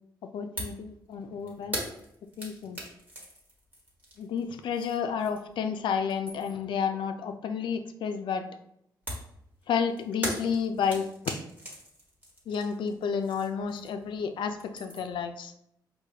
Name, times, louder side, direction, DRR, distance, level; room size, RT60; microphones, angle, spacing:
voice 1, 0.3-1.8 2.4-2.8 4.2-8.5 9.7-11.1 12.5-15.5, left 6 dB, 80° left, 7 dB, 0.4 m, -31 dB
sound 1, 0.6-0.8 1.1-5.6 5.9-6.7 9.1-14.2 14.4-15.2, equal, 20° right, 1.3 m, -40 dB
4.7 x 2.2 x 2.8 m, 0.74 s
cardioid pair, 85°, 8 cm